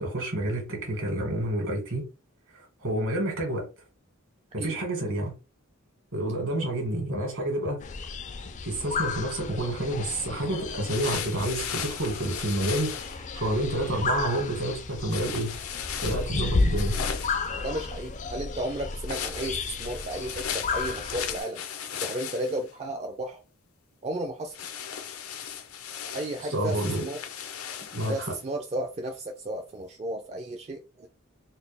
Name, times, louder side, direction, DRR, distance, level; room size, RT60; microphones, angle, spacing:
voice 1, 0.0-2.0 2.8-3.7 4.5-5.3 6.1-7.8 8.6-15.5 16.0-17.0 26.5-27.0 27.9-28.3, right 1 dB, 65° right, 1.8 m, -29 dB
sound 1, 7.8-21.4, left 4 dB, 35° left, 0.4 m, -33 dB
sound 2, 10.9-13.2 15.1-17.5 19.0-22.7 24.5-28.3, left 8 dB, 85° left, 0.6 m, -36 dB
voice 2, 17.5-21.6 22.0-23.4 24.0-24.6 26.1-27.2 28.1-31.1, right 1 dB, 30° right, 0.4 m, -33 dB
4.0 x 2.2 x 3.4 m
head